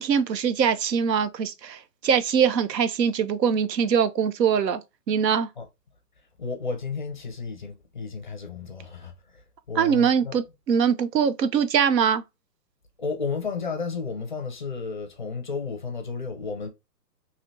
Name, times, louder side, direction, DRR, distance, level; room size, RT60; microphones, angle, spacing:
voice 1, 0.0-5.5 9.7-12.2, right 7 dB, 85° right, 0.7 m, -23 dB
voice 2, 6.4-10.4 13.0-16.7, left 4 dB, 30° left, 0.4 m, -33 dB
3.2 x 2.8 x 2.6 m
hypercardioid pair, 150°, 49 cm